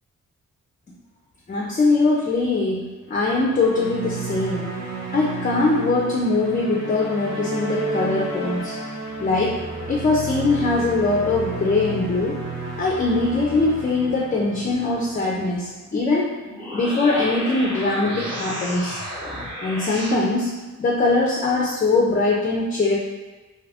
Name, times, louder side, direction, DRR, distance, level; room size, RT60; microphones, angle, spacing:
voice 1, 1.5-4.7 5.1-8.8 9.2-9.6 9.9-12.4 12.8-16.3 16.7-19.0 19.6-20.5 20.8-23.0, left 3 dB, 30° left, -3 dB, 0.4 m, -21 dB
sound 1, 3.1-15.6, right 3 dB, 75° right, 1.1 m, -32 dB
sound 2, 16.4-20.2, equal, 15° right, 0.9 m, -32 dB
2.6 x 2.5 x 3.3 m, 1.3 s
wide cardioid pair, 135°, 31 cm